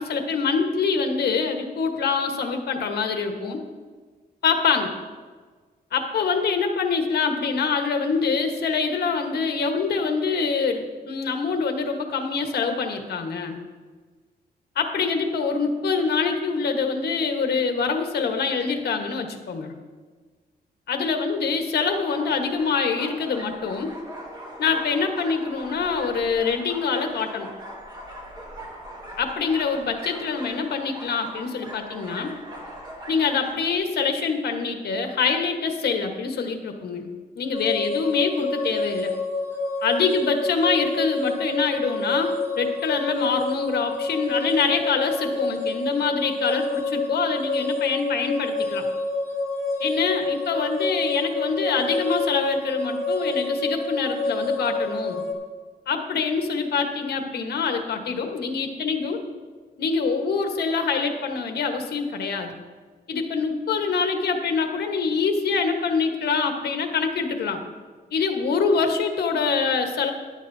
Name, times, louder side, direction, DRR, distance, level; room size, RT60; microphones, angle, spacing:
voice 1, 0.0-3.6 4.4-4.9 5.9-13.6 14.7-19.7 20.9-23.9 24.6-27.5 29.2-32.3 33.1-37.1 37.3-39.1 39.8-48.8 49.8-55.2 55.9-59.2 59.8-62.5 63.1-67.6 68.1-70.1, left 5 dB, 75° left, 5 dB, 1.3 m, -25 dB
sound 1, 21.8-33.7, right 1 dB, 25° right, 1.7 m, -40 dB
sound 2, 37.5-55.3, left 3 dB, 15° left, 2.0 m, -28 dB
16.0 x 11.0 x 2.7 m, 1.5 s
wide cardioid pair, 180°, 17 cm